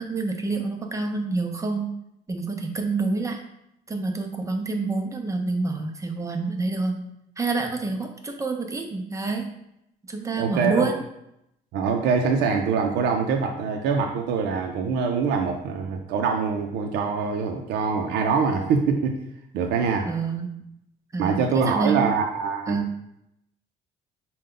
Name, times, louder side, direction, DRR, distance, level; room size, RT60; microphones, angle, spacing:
voice 1, 0.0-1.9 2.3-3.4 3.9-7.0 7.4-9.5 10.1-11.0 20.0-20.5 21.1-22.0 22.7-22.9, right 3 dB, 20° right, 3 dB, 0.6 m, -27 dB
voice 2, 10.4-10.9 11.7-19.2 19.5-20.1 21.2-22.8, right 5 dB, 85° right, 3 dB, 0.5 m, -24 dB
4.9 x 2.3 x 3.7 m, 0.81 s
cardioid pair, 110°, 17 cm